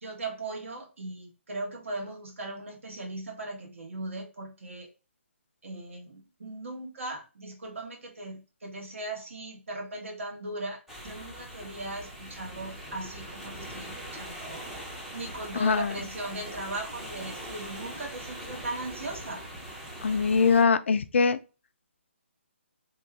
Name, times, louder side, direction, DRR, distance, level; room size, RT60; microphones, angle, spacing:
voice 1, 0.0-4.9 5.6-14.8 15.1-19.4, right 2 dB, 70° right, 1.4 m, -38 dB
sound 1, 10.9-20.6, equal, 5° right, 0.5 m, -42 dB
voice 2, 15.6-16.0 20.0-21.4, left 5 dB, 65° left, 0.3 m, -22 dB
2.9 x 2.4 x 3.3 m
hypercardioid pair, 160°, 7 cm